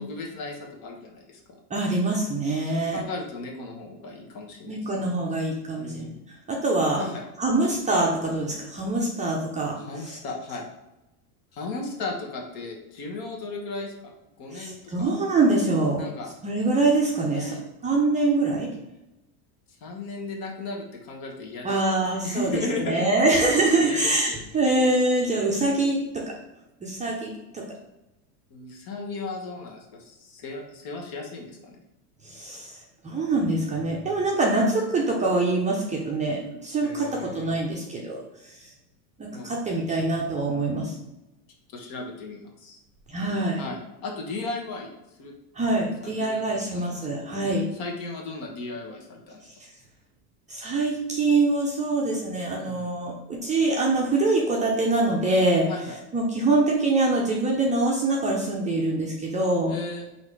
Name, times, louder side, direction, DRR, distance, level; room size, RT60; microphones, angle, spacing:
voice 1, 0.0-1.4 2.6-5.3 5.8-6.1 7.0-7.2 9.8-10.7 11.5-15.1 16.0-16.3 17.3-17.6 19.8-23.2 23.8-24.5 28.5-31.8 36.8-37.5 39.3-39.5 41.7-42.8 43.6-44.9 45.2-45.3 46.0-46.4 46.7-47.5 47.7-49.4 52.6-52.9 55.7-56.0 59.7-60.1, left 3 dB, 50° left, 0 dB, 1.3 m, -36 dB
voice 2, 1.7-3.0 4.7-6.1 6.5-7.1 7.4-9.8 10.1-10.2 14.5-16.0 16.4-17.6 17.8-18.7 21.6-22.5 22.8-26.3 26.8-27.6 32.2-38.2 38.4-38.7 39.2-40.9 43.1-43.6 45.5-47.7 50.5-55.7 56.1-59.7, right 2 dB, 15° right, -2 dB, 0.6 m, -24 dB
4.0 x 2.7 x 4.7 m, 0.95 s
supercardioid pair, 125°, 47 cm